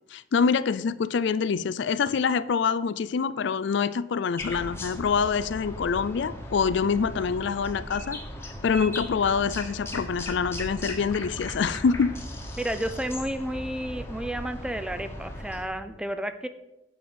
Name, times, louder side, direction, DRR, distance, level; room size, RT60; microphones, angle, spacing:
voice 1, 0.1-8.2 8.6-12.1, left 6 dB, 65° left, 16 dB, 0.4 m, -25 dB
sound 1, 4.4-15.7, left 1 dB, 15° left, 1.3 m, -38 dB
voice 2, 12.6-16.5, right 1 dB, 5° right, 10 dB, 0.5 m, -31 dB
8.5 x 5.4 x 7.2 m, 0.94 s
head